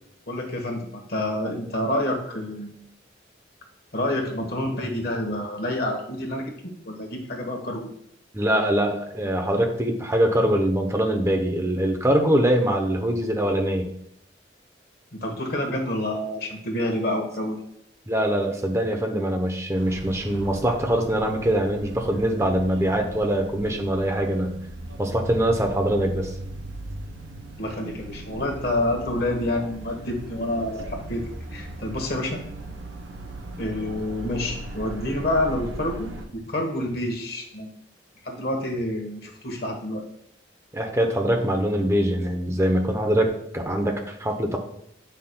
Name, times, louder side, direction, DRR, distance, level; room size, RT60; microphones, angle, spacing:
voice 1, 0.3-2.7 3.9-6.5 6.8-7.9 15.2-17.6 27.6-31.2 31.5-32.4 33.6-37.7 38.2-40.0, left 1 dB, 55° left, 2 dB, 1.2 m, -28 dB
voice 2, 8.3-13.9 18.1-24.6 25.0-26.3 40.7-44.6, right 1 dB, 15° right, 3 dB, 0.7 m, -23 dB
sound 1, 19.7-36.3, right 1 dB, 90° right, 0.8 m, -38 dB
8.1 x 5.6 x 2.2 m, 0.72 s
head